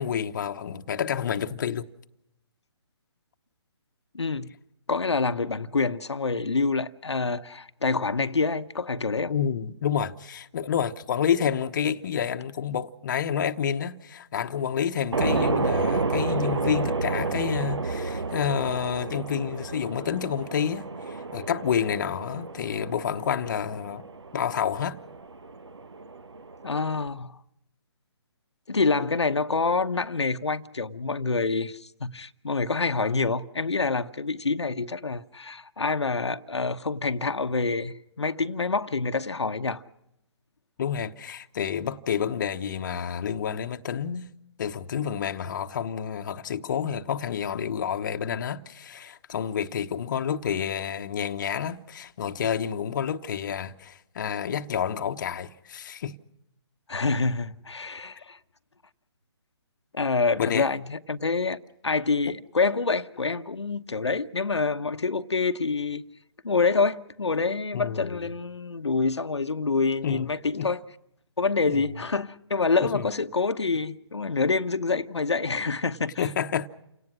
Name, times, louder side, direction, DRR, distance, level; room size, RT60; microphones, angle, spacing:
voice 1, 0.0-1.9 9.3-24.0 24.3-25.0 40.8-44.3 44.6-56.1 60.4-60.7 67.7-68.3 70.0-70.7 71.7-71.9 72.9-73.1 76.2-76.7, left 8 dB, 45° left, 1.0 m, -29 dB
voice 2, 4.1-4.5 4.9-9.3 15.3-15.6 26.6-27.4 28.7-39.8 56.9-58.4 59.9-66.0 66.4-70.8 71.4-76.3, left 4 dB, 80° left, 0.9 m, -27 dB
sound 1, 15.1-27.1, right 3 dB, 75° right, 1.1 m, -31 dB
29.0 x 18.0 x 6.2 m
figure-of-eight pair, 140°, 14 cm